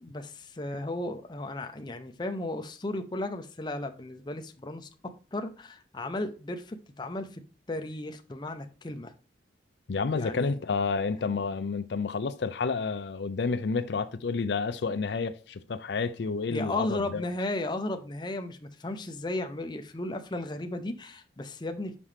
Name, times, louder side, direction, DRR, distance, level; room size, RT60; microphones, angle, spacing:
voice 1, 0.0-4.9 5.3-7.4 7.7-9.1 10.1-10.6 16.5-22.0, left 2 dB, 25° left, 0.6 m, -35 dB
voice 2, 9.9-17.3, left 4 dB, 70° left, 0.5 m, -30 dB
6.0 x 5.7 x 3.3 m
head